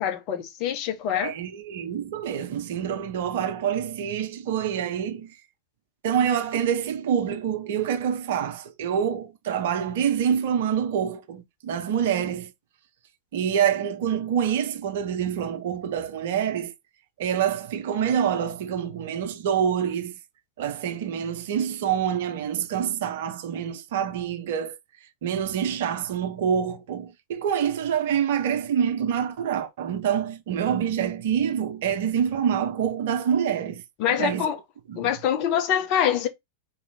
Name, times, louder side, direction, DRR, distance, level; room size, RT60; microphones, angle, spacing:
voice 1, 0.0-1.3 34.0-34.6 34.9-36.3, left 9 dB, 40° left, 0.9 m, -25 dB
voice 2, 1.2-5.4 6.0-12.5 13.3-16.7 17.2-20.2 20.6-24.8 25.2-33.8 34.1-34.5 34.9-35.1, right 8 dB, 55° right, 0.7 m, -26 dB
4.1 x 2.9 x 4.1 m
figure-of-eight pair, 90°, 0 cm